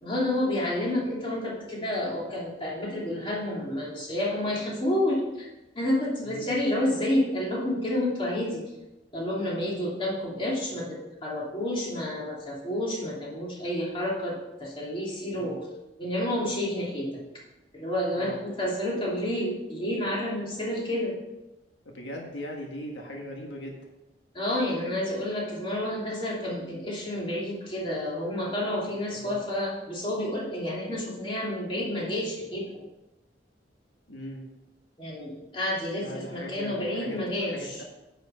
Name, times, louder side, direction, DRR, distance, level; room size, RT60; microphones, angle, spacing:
voice 1, 0.0-5.5 5.7-8.6 9.1-15.6 16.0-17.2 17.7-21.2 24.3-32.7 35.0-37.8, left 1 dB, 30° left, -5 dB, 2.8 m, -29 dB
voice 2, 6.2-6.5 15.3-15.6 18.1-18.4 21.8-23.8 29.1-29.4 34.1-34.4 36.0-37.2 37.4-37.8, equal, 85° left, 0 dB, 1.6 m, -39 dB
10.0 x 6.2 x 5.7 m, 1.0 s
head